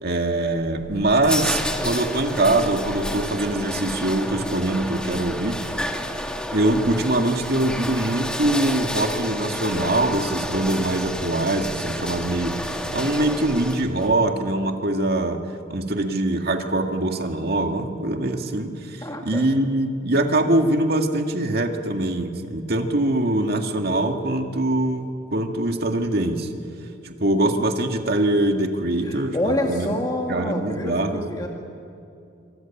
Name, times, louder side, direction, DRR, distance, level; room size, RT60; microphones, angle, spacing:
voice 1, 0.0-5.6 6.5-15.4 15.7-26.5 27.0-29.9 30.3-31.5, right 1 dB, 55° right, 4 dB, 2.1 m, -23 dB
sound 1, 0.6-14.1, equal, 5° left, 1.7 m, -30 dB
voice 2, 19.0-19.4 29.0-31.5, left 1 dB, 20° left, 1 dB, 1.9 m, -27 dB
27.5 x 24.5 x 7.3 m, 2.6 s
head